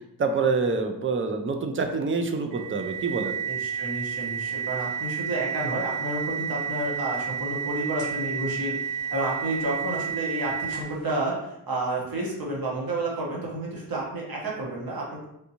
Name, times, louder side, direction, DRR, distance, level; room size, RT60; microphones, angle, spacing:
voice 1, 0.2-3.3, right 4 dB, 30° right, 5 dB, 0.4 m, -26 dB
sound 1, 2.5-11.0, right 7 dB, 85° right, 1.5 m, -31 dB
voice 2, 3.5-15.2, right 2 dB, 55° right, -4 dB, 1.1 m, -30 dB
3.5 x 2.6 x 2.8 m, 0.83 s
wide cardioid pair, 110°, 42 cm